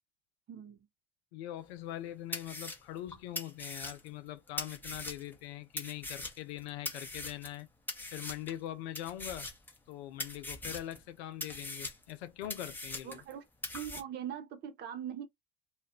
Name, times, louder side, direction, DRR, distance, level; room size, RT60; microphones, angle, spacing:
voice 1, 0.5-0.8 13.0-13.5 13.7-15.3, right 10 dB, 30° right, 0.5 m, -41 dB
voice 2, 1.3-7.7 8.1-9.5 9.9-13.2, left 13 dB, 70° left, 0.6 m, -42 dB
sound 1, 1.8-1.9 2.3-5.4 5.8-7.6 7.9-8.6 9.0-9.9 10.2-11.0 11.4-13.3 13.6-14.0, left 2 dB, 5° left, 0.7 m, -41 dB
2.4 x 2.1 x 3.6 m
hypercardioid pair, 75°, 33 cm